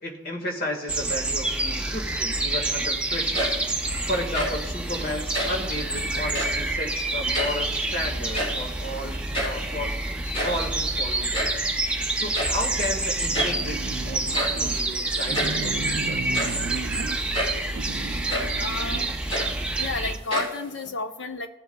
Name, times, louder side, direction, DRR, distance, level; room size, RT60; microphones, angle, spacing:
voice 1, 0.0-3.5 4.1-9.9 10.4-11.4 12.1-16.5, left 1 dB, 50° left, 1 dB, 1.6 m, -33 dB
sound 1, 0.9-20.2, right 2 dB, 5° right, 0.6 m, -28 dB
sound 2, 3.1-3.8 4.2-4.7 5.3-5.7 6.2-6.7 7.1-7.9 8.2-8.8 9.1-9.2 9.3-9.7 10.2-11.7 12.3-12.7 13.3-13.7 14.3-14.7 15.3-15.6 16.2-16.7 17.3-17.7 18.3-18.6 19.1-19.9 20.3-20.9, equal, 30° left, 2.7 m, -30 dB
sound 3, 13.3-14.8 15.3-17.4 17.8-19.1, right 4 dB, 75° right, 0.4 m, -35 dB
voice 2, 18.6-19.1 19.8-21.5, left 4 dB, 65° left, 7 dB, 0.7 m, -32 dB
16.5 x 8.1 x 2.3 m, 0.98 s
head